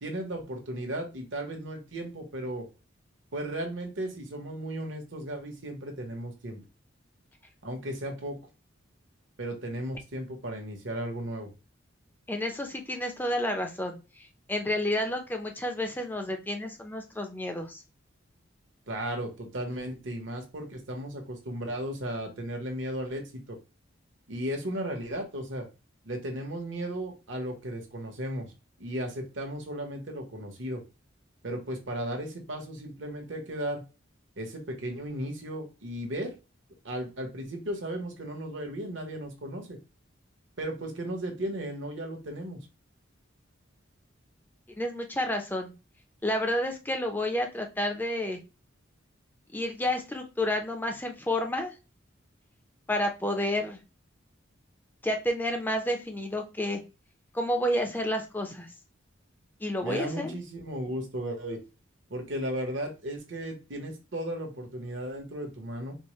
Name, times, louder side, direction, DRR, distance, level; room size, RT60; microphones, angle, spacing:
voice 1, 0.0-2.7 3.3-6.6 7.6-8.4 9.4-11.5 18.9-23.6 24.3-25.7 26.0-28.5 28.8-30.8 31.4-33.8 34.4-36.4 36.8-39.8 40.6-42.6 59.8-61.6 62.1-66.0, right 1 dB, 70° right, 3 dB, 1.1 m, -35 dB
voice 2, 12.3-17.8 44.8-45.7 46.2-48.4 49.5-51.7 52.9-53.8 55.0-56.8 57.3-58.7 59.6-60.3, left 1 dB, 10° left, 4 dB, 0.5 m, -30 dB
4.4 x 2.1 x 3.0 m, 0.30 s
head